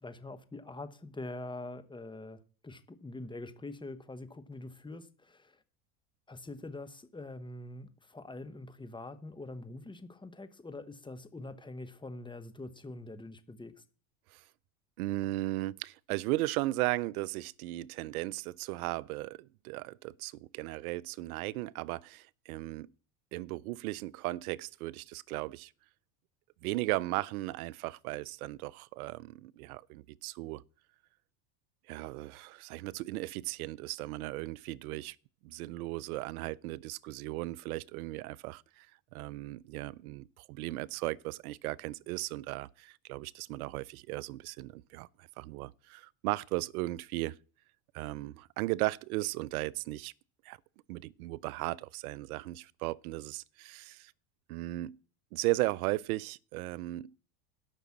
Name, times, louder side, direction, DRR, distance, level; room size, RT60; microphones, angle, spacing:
voice 1, 0.0-5.6 6.3-13.8, left 2 dB, 10° left, 1.1 m, -44 dB
voice 2, 15.0-22.9 23.3-25.7 26.6-30.6 31.9-35.2 35.4-38.9 39.1-45.1 45.4-47.4 47.9-50.1 50.4-50.6 50.9-54.1 54.5-55.0 55.3-57.1, right 18 dB, 85° right, 0.5 m, -36 dB
12.5 x 6.0 x 7.2 m
supercardioid pair, 100°, 43 cm